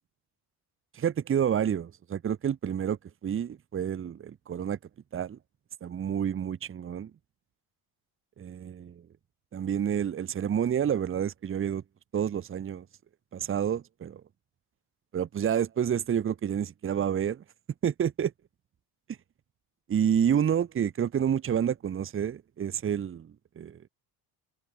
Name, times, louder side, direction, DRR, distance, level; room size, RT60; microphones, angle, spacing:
voice 1, 0.9-4.8 5.1-5.4 5.8-7.1 8.4-9.0 9.5-11.8 12.1-12.8 13.3-14.2 15.1-17.4 17.8-18.3 19.9-23.9, right 8 dB, 30° right, 1.1 m, -29 dB
cardioid pair, 145°, 45 cm